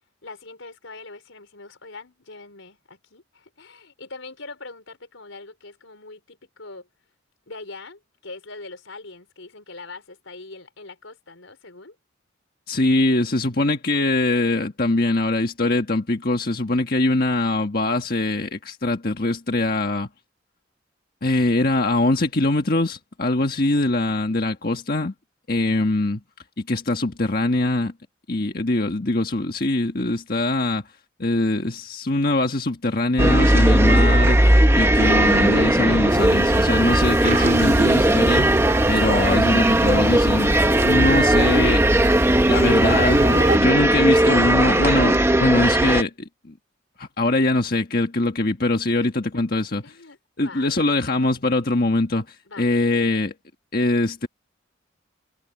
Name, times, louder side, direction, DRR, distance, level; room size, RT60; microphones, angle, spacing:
voice 1, 0.2-6.9 7.5-11.9 49.3-50.8 52.5-52.7, left 3 dB, 85° left, 4.7 m, -42 dB
voice 2, 12.7-20.1 21.2-25.1 25.5-26.2 26.7-27.9 28.3-30.8 31.2-34.4 34.7-38.5 38.9-40.5 40.8-41.8 42.5-46.5 47.0-49.8 50.4-53.3 53.7-54.3, left 2 dB, 50° left, 1.6 m, -22 dB
sound 1, 33.2-46.0, right 1 dB, 15° right, 0.9 m, -18 dB
sound 2, 36.1-43.6, right 1 dB, 40° right, 3.3 m, -28 dB
head